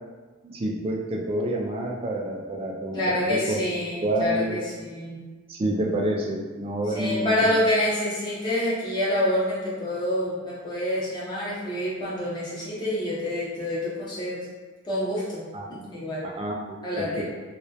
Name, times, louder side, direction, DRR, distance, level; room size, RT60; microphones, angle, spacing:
voice 1, 0.4-3.6 4.0-4.6 5.5-7.5 15.5-15.7 16.4-17.2, right 1 dB, 30° right, 0 dB, 0.3 m, -28 dB
voice 2, 2.9-5.2 6.9-14.5 14.8-15.4 15.7-16.2 16.8-17.2, left 1 dB, 20° left, -7 dB, 0.6 m, -27 dB
2.2 x 2.1 x 2.7 m, 1.3 s
head